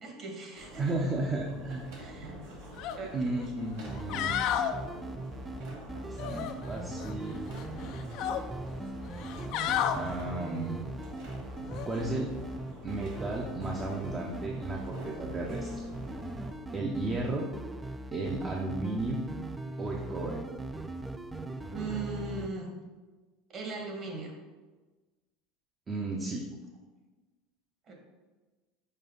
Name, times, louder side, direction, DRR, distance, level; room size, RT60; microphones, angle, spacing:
voice 1, 0.0-0.9 2.0-2.4 2.9-3.5 21.7-22.7 23.5-24.3 27.9-28.0, right 3 dB, 40° right, 1 dB, 1.6 m, -39 dB
sound 1, 0.5-16.5, right 1 dB, 75° right, 1.8 m, -46 dB
voice 2, 0.8-1.9 3.1-4.3 6.0-7.5 9.9-10.8 11.7-12.3 12.8-15.8 16.7-17.5 18.1-19.2 19.8-20.4 25.9-26.4, right 2 dB, 25° right, -1 dB, 0.7 m, -34 dB
sound 2, 2.8-3.0 3.4-3.5 3.9-4.7 6.2-7.1 7.5-8.4 9.1-10.0 11.7-11.9, left 10 dB, 60° left, 0.4 m, -32 dB
sound 3, 3.9-22.5, right 2 dB, 10° right, 0.4 m, -40 dB
5.4 x 4.7 x 4.0 m, 1.3 s
supercardioid pair, 105°, 0 cm